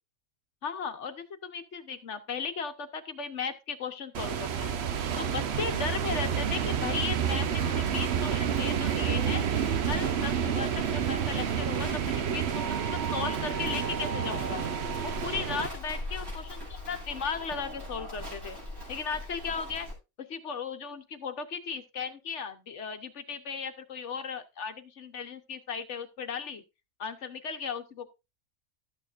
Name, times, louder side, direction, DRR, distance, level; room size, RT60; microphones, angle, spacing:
voice 1, 0.6-4.7 5.2-9.4 9.9-14.6 15.0-18.6 18.9-19.9 20.2-26.6 27.0-28.1, left 5 dB, 60° left, 8 dB, 1.3 m, -36 dB
sound 1, 4.1-15.7, right 8 dB, 55° right, 0.9 m, -29 dB
Livestock farm animals working animals, 5.5-19.9, left 1 dB, 15° right, 6.7 m, -42 dB
12.5 x 8.8 x 2.5 m, 0.26 s
omnidirectional pair, 1.4 m